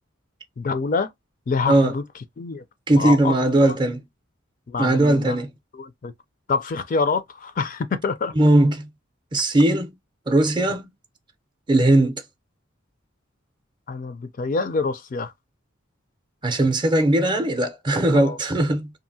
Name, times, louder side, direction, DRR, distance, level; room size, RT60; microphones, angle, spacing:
voice 1, 0.6-1.1 1.5-2.1 2.4-2.6 2.9-3.3 3.6-3.8 4.7-5.4 5.7-6.1 6.5-8.3 13.9-15.3 18.1-18.4, left 4 dB, 40° left, 0.4 m, -26 dB
voice 2, 2.9-4.0 4.8-5.5 8.4-8.9 9.3-9.9 10.3-10.9 11.7-12.2 16.4-18.9, right 1 dB, 25° right, 0.5 m, -19 dB
2.7 x 2.5 x 2.7 m
head